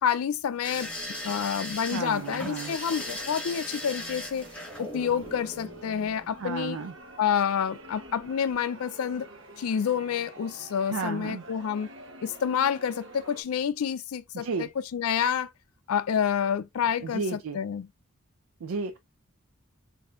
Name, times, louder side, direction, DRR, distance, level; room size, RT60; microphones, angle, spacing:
voice 1, 0.0-0.9 1.2-4.5 4.8-6.8 7.2-9.3 9.6-11.9 12.2-15.5 15.9-17.9, left 8 dB, 85° left, 0.4 m, -28 dB
sound 1, 0.6-6.6 7.9-8.2 8.5-8.6, left 1 dB, 5° left, 1.0 m, -38 dB
sound 2, 1.9-13.4, right 2 dB, 55° right, 0.9 m, -48 dB
voice 2, 1.9-2.8 6.4-6.9 10.9-11.4 14.3-14.7 17.0-17.6 18.6-19.0, right 4 dB, 85° right, 0.4 m, -33 dB
4.2 x 2.7 x 2.4 m
head